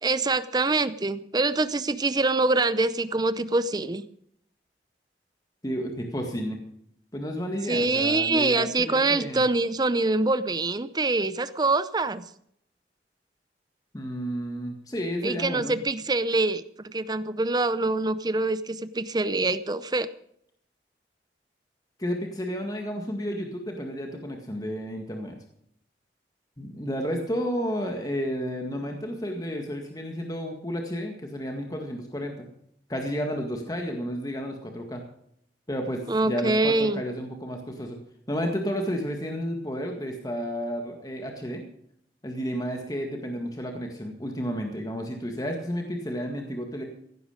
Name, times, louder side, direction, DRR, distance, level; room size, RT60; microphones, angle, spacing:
voice 1, 0.0-4.0 7.7-12.2 15.2-20.1 36.1-37.0, right 2 dB, 25° right, 14 dB, 0.6 m, -25 dB
voice 2, 5.6-6.6 7.1-9.4 13.9-15.8 22.0-25.4 26.6-32.5 32.9-35.0 35.7-38.0 38.3-41.6 42.2-46.8, equal, 20° left, 3 dB, 1.8 m, -31 dB
15.5 x 11.5 x 5.1 m, 0.69 s
head